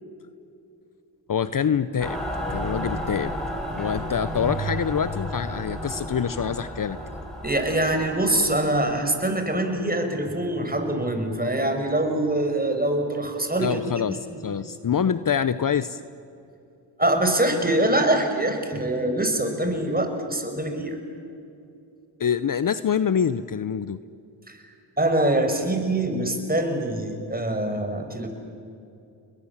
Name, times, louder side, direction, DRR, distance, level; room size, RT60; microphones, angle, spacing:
voice 1, 1.3-2.2 2.5-3.3 3.7-7.0 13.6-16.0 22.2-24.0, left 7 dB, 45° left, 14 dB, 0.9 m, -25 dB
Mechanical fan, 2.0-8.8, equal, ahead, 7.9 m, -32 dB
voice 2, 7.4-13.9 14.3-14.4 17.0-21.0 24.5-24.6 25.0-28.3, right 1 dB, 20° right, 5 dB, 5.7 m, -24 dB
30.0 x 21.5 x 7.3 m, 2.6 s
supercardioid pair, 45°, 47 cm